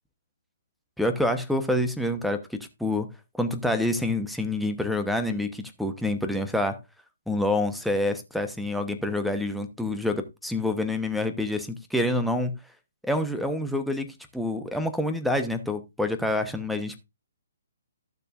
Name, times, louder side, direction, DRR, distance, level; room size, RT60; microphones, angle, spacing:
voice 1, 1.0-3.1 3.4-6.8 7.3-12.6 13.0-17.0, left 1 dB, ahead, 1.0 m, -27 dB
14.0 x 6.7 x 2.5 m
figure-of-eight pair, 135°, 0 cm